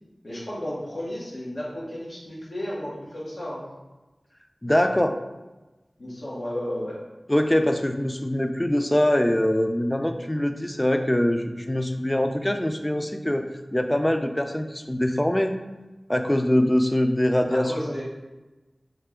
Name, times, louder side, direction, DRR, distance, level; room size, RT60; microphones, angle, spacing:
voice 1, 0.2-3.6 6.0-7.0 17.5-18.0, left 1 dB, 85° left, -8 dB, 1.1 m, -33 dB
voice 2, 4.6-5.2 7.3-13.5 13.7-15.5 16.1-18.0, left 1 dB, 20° left, 6 dB, 0.4 m, -23 dB
3.3 x 3.3 x 3.6 m, 1.1 s
wide cardioid pair, 45°, 0 cm